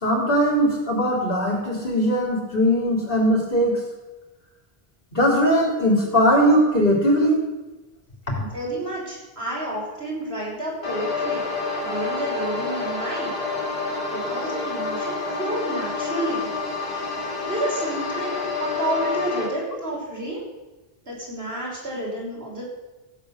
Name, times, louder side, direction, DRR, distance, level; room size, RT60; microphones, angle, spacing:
voice 1, 0.0-3.8 5.1-7.4, equal, 60° left, -2 dB, 4.1 m, -20 dB
voice 2, 8.4-11.4 11.8-13.3 14.1-16.5 16.9-17.1 17.5-20.4 21.1-22.6, right 1 dB, 80° right, -5 dB, 5.9 m, -30 dB
sound 1, 10.8-19.5, left 4 dB, 85° left, 2.8 m, -28 dB
15.5 x 9.0 x 6.8 m, 1.1 s
omnidirectional pair, 1.0 m